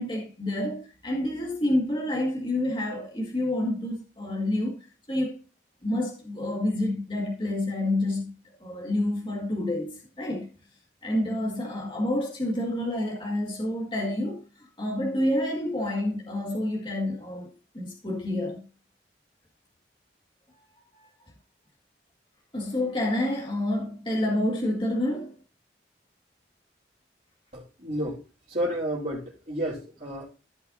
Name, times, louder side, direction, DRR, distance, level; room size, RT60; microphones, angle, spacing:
voice 1, 0.0-4.8 5.1-5.4 5.8-8.3 8.6-10.5 11.0-18.7 20.9-21.1 22.5-25.4, left 1 dB, 25° left, 1.9 m, -28 dB
voice 2, 27.5-28.2 28.5-30.2, equal, 45° right, 3.5 m, -31 dB
15.0 x 5.7 x 2.7 m
head